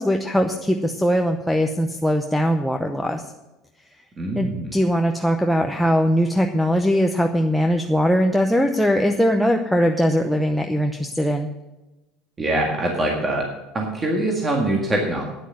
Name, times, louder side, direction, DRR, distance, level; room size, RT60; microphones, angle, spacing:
voice 1, 0.0-3.2 4.3-11.5, equal, ahead, 2 dB, 0.7 m, -20 dB
voice 2, 4.2-4.7 12.4-13.5 13.7-15.2, right 1 dB, 20° right, 0 dB, 1.8 m, -23 dB
9.5 x 8.6 x 7.6 m, 1.0 s
supercardioid pair, 125°, 0 cm